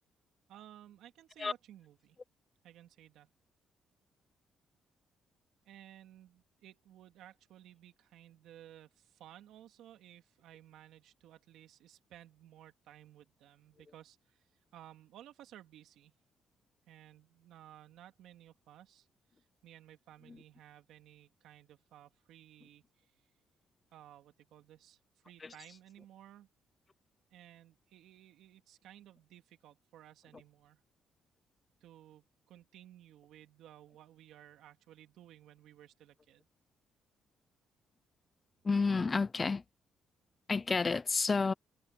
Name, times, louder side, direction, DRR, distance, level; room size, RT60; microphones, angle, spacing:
voice 1, 0.5-2.2 2.6-3.3 5.6-14.5 14.7-16.1 16.9-19.1 19.4-23.1 23.9-26.5 27.3-30.8 31.8-36.5, right 12 dB, 85° right, 3.2 m, -57 dB
voice 2, 38.7-39.6 40.5-41.5, left 4 dB, 30° left, 0.5 m, -30 dB
cardioid pair, 90°, 0 cm